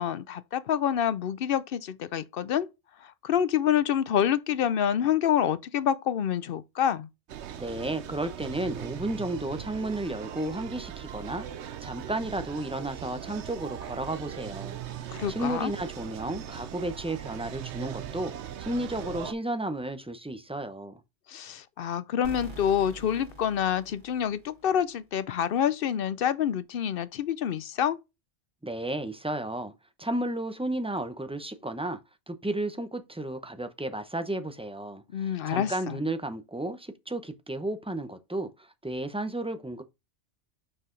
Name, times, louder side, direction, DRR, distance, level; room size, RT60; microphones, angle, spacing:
voice 1, 0.0-2.7 3.0-7.1 15.1-15.7 21.3-28.0 35.1-36.0, left 9 dB, 60° left, 0.7 m, -27 dB
sound 1, 7.3-19.3, right 10 dB, 75° right, 1.0 m, -40 dB
voice 2, 7.6-18.3 18.6-21.0 28.6-29.7 30.0-32.0 32.3-39.8, right 1 dB, 5° right, 0.6 m, -33 dB
sound 2, 22.2-25.0, equal, 45° right, 2.5 m, -45 dB
6.2 x 4.7 x 3.8 m
omnidirectional pair, 1.2 m